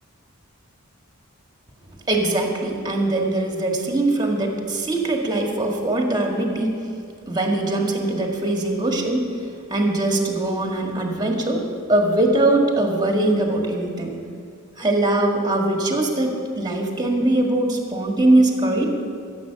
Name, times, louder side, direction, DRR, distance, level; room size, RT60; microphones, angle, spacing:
voice 1, 2.1-6.8 7.3-9.3 9.7-11.6 11.9-14.1 14.8-18.9, right 2 dB, 20° right, 1 dB, 1.7 m, -21 dB
15.0 x 7.7 x 6.9 m, 2.3 s
head